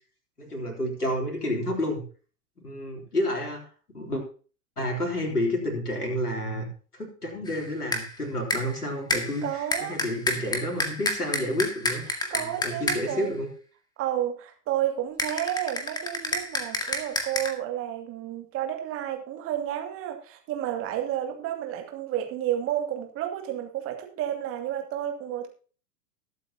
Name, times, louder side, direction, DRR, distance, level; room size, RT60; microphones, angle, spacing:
voice 1, 0.4-2.0 2.6-4.2 4.8-6.7 6.9-12.0 12.3-13.5, left 1 dB, 80° left, 1 dB, 3.7 m, -30 dB
sound 1, 7.5-8.2 8.5-8.8 9.1-13.2 15.2-17.5, left 1 dB, 10° left, 1.8 m, -30 dB
voice 2, 9.4-10.0 12.3-13.3 14.0-25.5, right 11 dB, 30° right, 3 dB, 2.4 m, -31 dB
21.0 x 8.3 x 2.9 m, 0.39 s
figure-of-eight pair, 100°, 45 cm